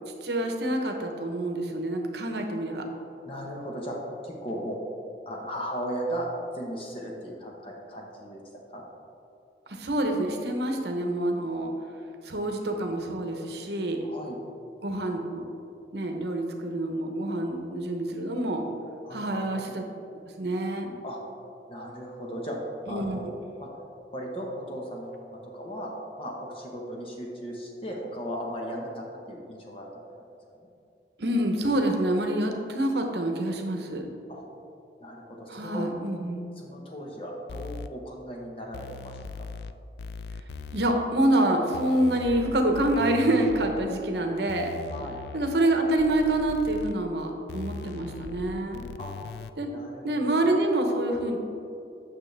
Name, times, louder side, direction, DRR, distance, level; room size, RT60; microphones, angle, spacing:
voice 1, 0.2-2.8 9.8-11.7 12.2-14.0 14.8-15.5 15.9-18.6 19.1-19.8 20.4-20.9 22.9-23.2 31.2-34.1 35.5-36.5 40.7-44.7 45.3-48.8 49.6-49.7 50.0-51.4, right 1 dB, 70° right, 3 dB, 0.9 m, -27 dB
voice 2, 3.2-4.0 4.2-4.8 5.2-6.3 6.5-8.4 8.7-8.8 14.0-14.4 19.0-19.5 21.0-21.2 21.7-23.3 23.6-23.7 24.1-29.9 30.6-30.7 34.3-34.5 35.0-35.9 36.5-39.5 44.9-45.2 49.0-49.2 49.7-50.6, equal, 30° left, -1 dB, 1.0 m, -37 dB
sound 1, 37.5-37.9 38.7-39.7 40.0-40.9 41.7-43.9 44.5-45.6 46.0-46.9 47.5-49.5, left 5 dB, 70° left, 0.3 m, -40 dB
8.9 x 6.3 x 3.3 m, 2.6 s
head